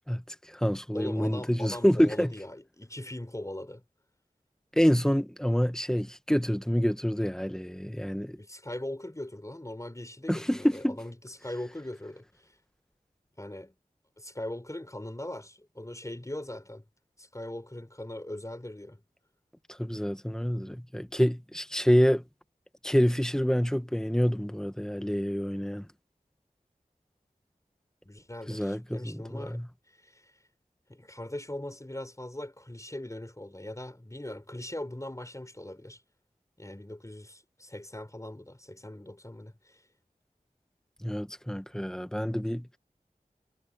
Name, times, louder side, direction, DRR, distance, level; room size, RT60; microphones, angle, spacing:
voice 1, 0.1-2.3 4.8-8.4 10.3-11.0 19.8-22.2 22.8-25.9 28.5-29.7 41.0-42.7, equal, 5° left, 1.6 m, -27 dB
voice 2, 0.9-3.8 8.4-12.5 13.4-13.7 14.2-16.8 17.2-19.0 28.0-29.6 30.0-30.3 30.9-36.0 36.6-39.8, left 1 dB, 20° left, 4.1 m, -40 dB
wide cardioid pair, 45°, 15 cm